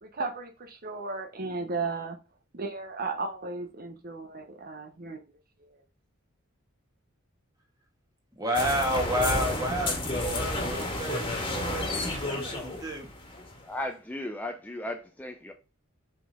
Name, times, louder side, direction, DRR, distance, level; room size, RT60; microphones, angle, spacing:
voice 1, 0.0-2.2 2.5-5.2 5.6-5.8, right 3 dB, 45° right, 0.9 m, -35 dB
voice 2, 8.4-13.1, equal, 20° right, 1.9 m, -31 dB
sound 1, 8.5-13.6, left 2 dB, 25° left, 1.8 m, -31 dB
voice 3, 13.6-15.5, left 1 dB, 10° left, 0.6 m, -36 dB
6.0 x 5.2 x 3.7 m
head